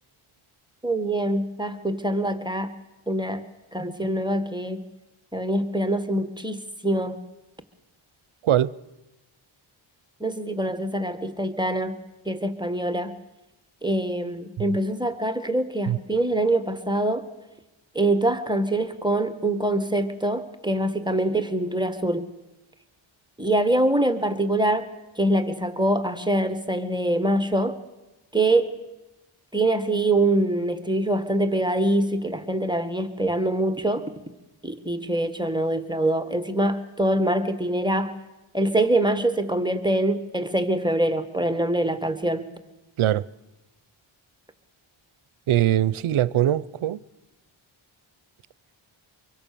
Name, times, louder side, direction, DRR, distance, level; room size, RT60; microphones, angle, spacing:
voice 1, 0.8-2.7 3.1-3.4 3.7-4.8 5.3-7.2 10.2-12.0 12.3-13.1 13.8-17.3 18.0-22.3 23.4-24.9 25.2-27.8 28.3-28.7 29.5-34.0 34.6-38.1 38.5-42.5, right 1 dB, 10° right, 1.7 m, -24 dB
voice 2, 8.4-8.8 15.9-16.0 43.0-43.3 45.5-47.0, right 12 dB, 75° right, 0.7 m, -22 dB
24.5 x 24.0 x 6.9 m
wide cardioid pair, 85°, 49 cm